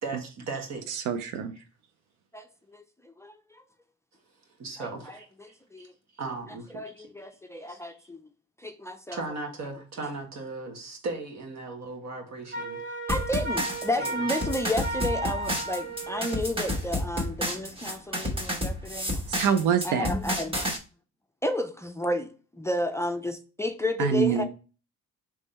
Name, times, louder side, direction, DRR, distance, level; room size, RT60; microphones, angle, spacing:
voice 1, 0.0-0.9 1.6-1.7 4.6-5.3 5.8-5.9 6.2-6.7 7.0-7.1 7.7-8.1 9.1-12.8 14.0-14.3, right 3 dB, 60° right, 1.4 m, -37 dB
voice 2, 0.9-1.5 19.3-20.1 24.0-24.4, right 8 dB, 85° right, 0.5 m, -25 dB
voice 3, 2.3-3.6 4.8-5.9 6.7-8.2 8.6-9.2 13.1-19.2 19.8-20.6 21.4-24.4, left 1 dB, 10° left, 0.4 m, -32 dB
Wind instrument woodwind instrument, 12.5-16.5, right 2 dB, 40° right, 1.1 m, -34 dB
sound 1, 13.1-20.8, equal, 20° right, 1.2 m, -30 dB
3.6 x 3.1 x 4.1 m
cardioid pair, 90°, 30 cm